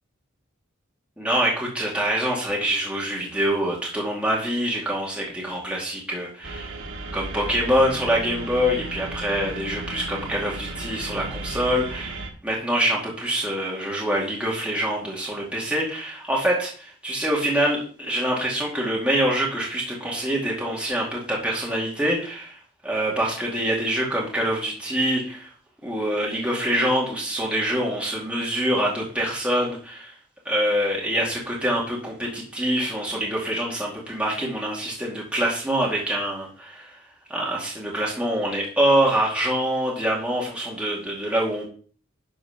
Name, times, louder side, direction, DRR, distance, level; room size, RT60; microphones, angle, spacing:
voice 1, 1.2-6.7 7.1-25.5 25.8-30.1 30.5-37.0 37.3-41.6, right 1 dB, 5° right, -4 dB, 2.1 m, -25 dB
sound 1, 6.4-12.3, right 2 dB, 70° right, 1.6 m, -34 dB
10.5 x 4.7 x 5.9 m, 0.43 s
head